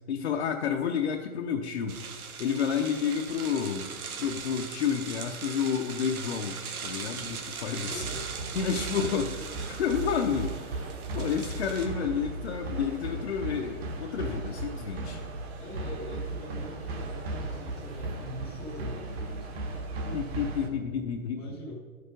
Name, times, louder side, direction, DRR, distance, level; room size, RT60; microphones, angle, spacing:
voice 1, 0.1-2.0 2.4-3.9 4.2-8.1 8.5-9.3 9.7-10.9 11.1-15.2 20.1-21.4, left 7 dB, 50° left, 1 dB, 0.7 m, -30 dB
sound 1, 1.9-11.9, right 6 dB, 85° right, 1.5 m, -40 dB
voice 2, 7.8-8.3 8.9-9.5 11.3-11.6 15.6-20.2 21.3-21.7, left 1 dB, ahead, -13 dB, 0.6 m, -44 dB
sound 2, 7.8-20.7, right 2 dB, 45° right, 1.4 m, -36 dB
11.0 x 6.7 x 5.2 m, 1.5 s
hypercardioid pair, 180°, 43 cm